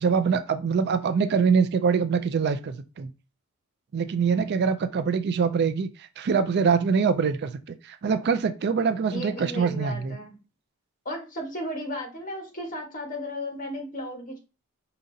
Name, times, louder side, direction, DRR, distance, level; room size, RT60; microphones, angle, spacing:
voice 1, 0.0-3.1 3.9-10.2, right 5 dB, 50° right, 0.3 m, -24 dB
voice 2, 9.1-10.3 11.0-14.4, left 1 dB, 40° left, 1.3 m, -35 dB
5.0 x 2.8 x 2.7 m
head